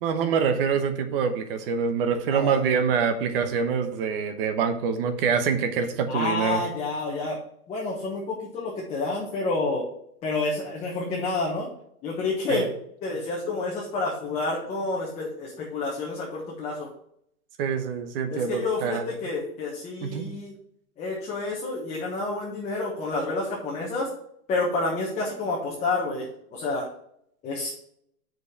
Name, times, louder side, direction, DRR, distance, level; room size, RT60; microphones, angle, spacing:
voice 1, 0.0-6.6 12.5-12.7 17.6-19.0 20.0-20.3, right 6 dB, 40° right, 8 dB, 1.0 m, -25 dB
voice 2, 6.1-7.4 7.7-9.9 10.2-11.7 12.0-12.7 13.0-16.9 18.3-20.5 21.0-24.1 24.5-26.9 27.4-27.7, left 3 dB, 15° left, -4 dB, 1.1 m, -29 dB
6.1 x 5.2 x 6.1 m, 0.72 s
hypercardioid pair, 160°, 45 cm